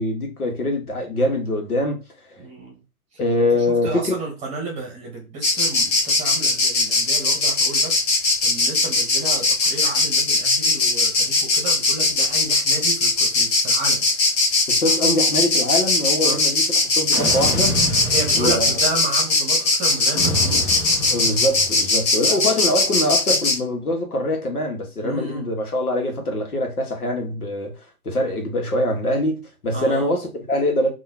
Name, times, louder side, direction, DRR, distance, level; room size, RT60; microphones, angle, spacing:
voice 1, 0.0-2.0 3.2-4.2 14.7-17.8 18.3-18.7 21.1-27.7 28.0-30.9, left 1 dB, 70° left, 1.6 m, -23 dB
voice 2, 2.4-2.8 3.1-3.2 3.5-14.1 16.2-16.4 18.0-20.8 25.0-25.5 29.7-30.1, right 3 dB, 15° right, 1.3 m, -32 dB
Insect, 5.4-23.6, left 3 dB, 30° left, 1.1 m, -19 dB
sound 1, 17.1-19.0 20.1-21.9, equal, 10° left, 0.5 m, -28 dB
3.8 x 3.0 x 2.8 m
figure-of-eight pair, 120°, 45 cm